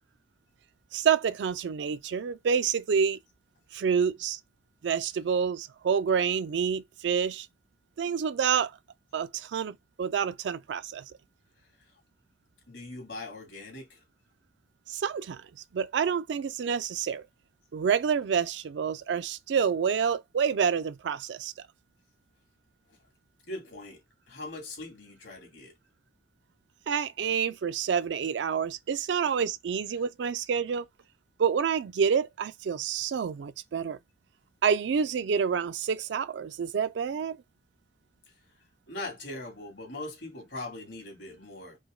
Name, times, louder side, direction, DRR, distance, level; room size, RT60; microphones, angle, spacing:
voice 1, 0.9-3.2 3.7-4.4 4.8-7.5 8.0-8.7 9.1-11.1 14.9-17.2 17.7-21.5 26.9-30.8 31.4-34.0 34.6-37.4, right 7 dB, 70° right, 0.4 m, -28 dB
voice 2, 12.7-14.0 23.4-25.7 38.9-41.8, left 2 dB, 85° left, 2.5 m, -41 dB
5.0 x 2.1 x 3.7 m
head